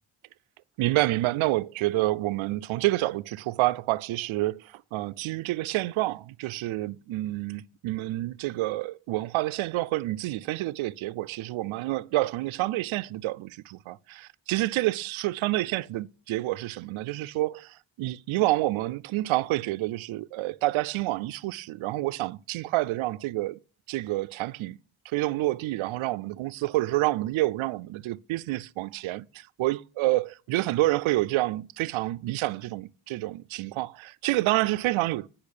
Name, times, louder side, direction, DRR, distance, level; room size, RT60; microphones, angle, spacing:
voice 1, 0.8-23.6 23.9-24.8 25.1-35.3, right 18 dB, 90° right, 0.5 m, -28 dB
10.5 x 5.8 x 6.5 m
cardioid pair, 90°, 47 cm